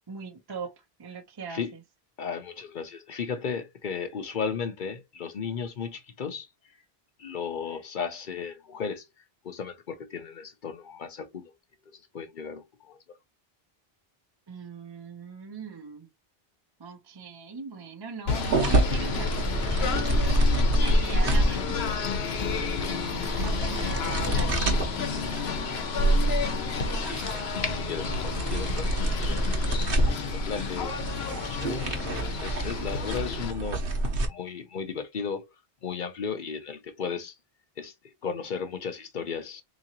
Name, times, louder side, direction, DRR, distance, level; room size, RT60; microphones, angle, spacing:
voice 1, 0.1-1.8 14.5-16.1 16.8-21.7 23.4-25.4, right 5 dB, 30° right, 0.5 m, -40 dB
voice 2, 2.2-6.5 7.2-9.1 9.4-11.5 11.9-13.2 26.9-33.8 34.3-35.5 35.8-37.3 37.8-39.6, left 6 dB, 55° left, 0.8 m, -35 dB
Singing / Bird, 18.3-33.5, left 6 dB, 80° left, 1.0 m, -32 dB
sound 1, 18.4-34.3, right 1 dB, 65° right, 1.1 m, -27 dB
3.7 x 3.0 x 2.8 m
omnidirectional pair, 1.0 m